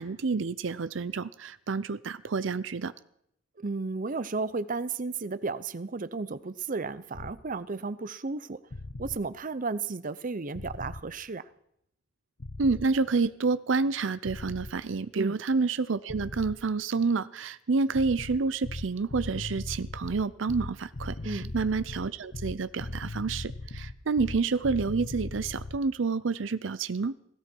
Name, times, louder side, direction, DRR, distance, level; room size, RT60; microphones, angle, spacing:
voice 1, 0.0-2.9 12.6-27.1, right 4 dB, 80° right, 0.6 m, -29 dB
voice 2, 3.6-8.6 9.0-11.4 15.1-15.4 21.2-21.5, right 3 dB, 45° right, 0.7 m, -33 dB
sound 1, 7.1-7.4 8.7-9.2 10.6-11.0 12.4-13.0 14.2-14.7 16.1-16.6 17.9-25.8, left 2 dB, 60° left, 1.0 m, -38 dB
17.5 x 16.5 x 4.6 m
head